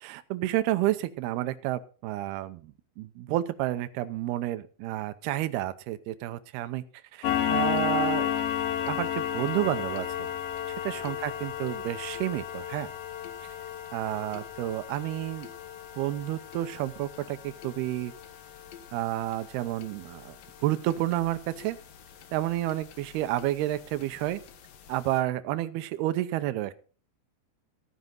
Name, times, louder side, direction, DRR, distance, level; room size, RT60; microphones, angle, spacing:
voice 1, 0.0-6.8 7.1-8.3 8.9-10.3 10.8-12.9 13.9-15.5 16.0-18.1 18.9-20.4 20.6-21.8 22.3-24.4 24.9-26.7, right 15 dB, 75° right, 12 dB, 2.5 m, -30 dB
Old wall clock, 7.2-22.3 22.7-22.9 23.4-23.5 23.9-24.0 24.5-24.6 24.9-25.0, left 10 dB, 65° left, 2.6 m, -33 dB
15.0 x 9.5 x 4.0 m, 0.37 s
omnidirectional pair, 5.2 m